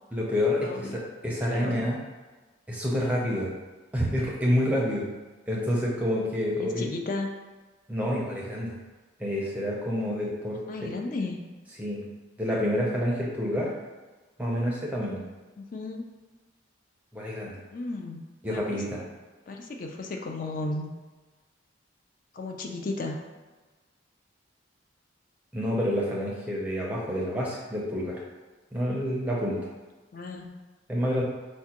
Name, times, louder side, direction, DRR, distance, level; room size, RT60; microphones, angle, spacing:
voice 1, 0.1-2.0 2.7-3.5 3.9-5.1 5.5-6.9 7.9-8.7 9.2-10.6 11.8-12.0 12.4-13.7 14.4-15.2 17.1-17.6 18.4-19.0 25.5-28.2 28.7-29.7 30.9-31.2, equal, 10° right, -4 dB, 0.5 m, -28 dB
voice 2, 0.6-1.0 1.5-1.8 6.6-7.3 10.7-11.4 15.6-16.0 17.7-18.2 18.5-18.8 19.5-20.9 22.3-23.2 30.1-30.5, left 2 dB, 45° left, 2 dB, 0.4 m, -34 dB
4.6 x 2.1 x 2.8 m, 1.3 s
head